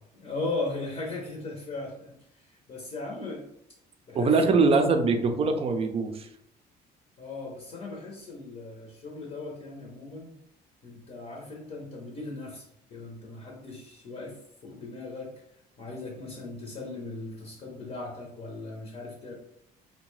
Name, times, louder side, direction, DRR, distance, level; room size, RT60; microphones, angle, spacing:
voice 1, 0.1-3.5 4.1-5.0 7.2-10.4 10.8-15.3 15.8-19.3, left 2 dB, 40° left, -1 dB, 0.7 m, -38 dB
voice 2, 4.1-6.3, right 4 dB, 35° right, 6 dB, 0.4 m, -23 dB
2.7 x 2.2 x 3.1 m, 0.77 s
cardioid pair, 110°, 17 cm